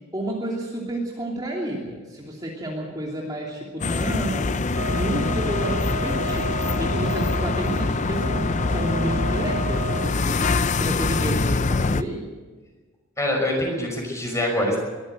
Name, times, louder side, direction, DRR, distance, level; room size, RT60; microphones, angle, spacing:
voice 1, 0.1-10.4 10.8-12.3, right 1 dB, 20° right, -3 dB, 3.0 m, -30 dB
sound 1, 3.8-12.0, left 3 dB, 35° left, 0.5 m, -24 dB
sound 2, 4.7-10.2, right 2 dB, 85° right, 2.7 m, -33 dB
voice 2, 13.2-14.8, left 1 dB, 15° left, 1 dB, 5.7 m, -24 dB
23.0 x 14.5 x 8.0 m, 1.4 s
head